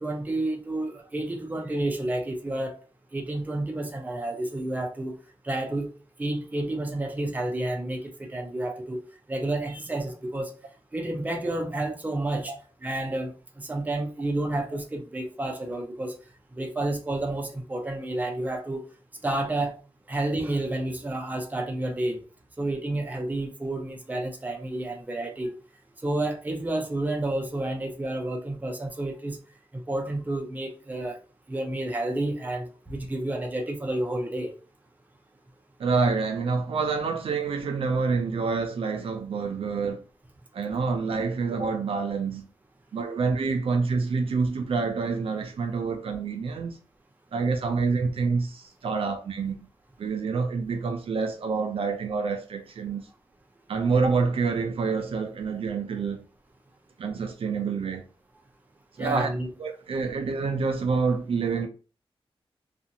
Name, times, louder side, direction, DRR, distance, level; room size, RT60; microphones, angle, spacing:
voice 1, 0.0-2.8 3.1-5.2 5.4-5.9 6.2-9.0 9.3-10.5 10.9-12.5 12.8-16.2 16.5-18.8 19.2-19.8 20.1-22.2 22.6-25.5 26.0-29.4 29.7-31.2 31.5-34.5 59.0-59.5, right 1 dB, 15° right, 0.5 m, -30 dB
voice 2, 35.8-40.0 40.5-42.4 42.9-46.8 47.3-49.7 50.0-53.1 53.7-56.3 57.0-58.0 59.0-59.3 59.6-61.7, right 4 dB, 70° right, 0.5 m, -27 dB
2.5 x 2.4 x 2.8 m
wide cardioid pair, 125°, 10 cm